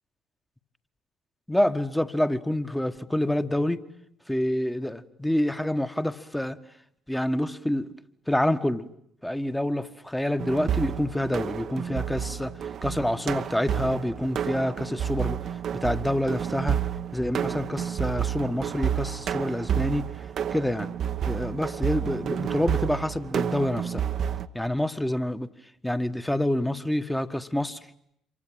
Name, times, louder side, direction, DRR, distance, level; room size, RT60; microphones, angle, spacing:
voice 1, 1.5-3.9 4.3-6.6 7.1-7.9 8.3-8.9 9.2-15.4 15.7-16.8 17.1-20.1 20.5-20.9 21.3-24.0 24.5-25.5 25.8-27.8, left 1 dB, 5° left, 1.6 m, -27 dB
sound 1, 10.4-24.5, right 9 dB, 50° right, 1.1 m, -30 dB
27.5 x 24.0 x 8.9 m
figure-of-eight pair, 50°, 0 cm